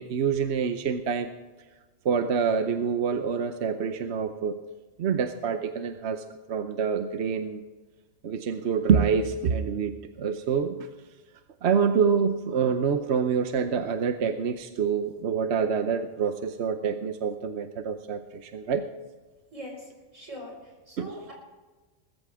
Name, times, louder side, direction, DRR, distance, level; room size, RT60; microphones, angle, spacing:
voice 1, 0.0-1.3 2.0-4.6 5.0-7.6 8.2-10.9 11.6-18.8 21.0-21.2, right 6 dB, 65° right, 8 dB, 1.0 m, -26 dB
voice 2, 19.5-21.3, equal, 90° right, 0 dB, 5.3 m, -42 dB
20.5 x 14.0 x 3.6 m, 1.3 s
omnidirectional pair, 1.3 m